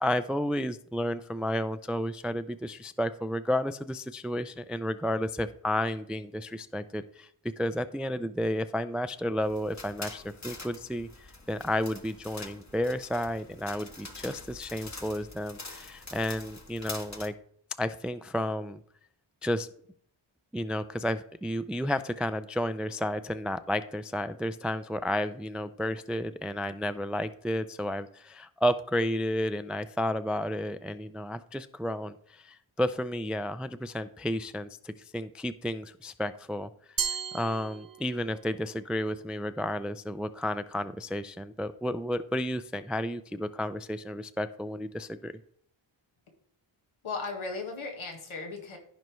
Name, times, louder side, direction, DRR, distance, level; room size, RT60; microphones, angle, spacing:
voice 1, 0.0-7.3 7.6-17.3 17.8-18.8 19.4-19.7 20.5-45.3, equal, ahead, 12 dB, 0.3 m, -32 dB
sound 1, 9.4-17.3, left 3 dB, 35° left, 1.5 m, -45 dB
Glass, 37.0-38.4, right 7 dB, 45° right, 0.7 m, -34 dB
voice 2, 47.0-48.8, left 4 dB, 80° left, 2 dB, 1.8 m, -36 dB
15.5 x 5.4 x 3.1 m, 0.63 s
wide cardioid pair, 70°, 49 cm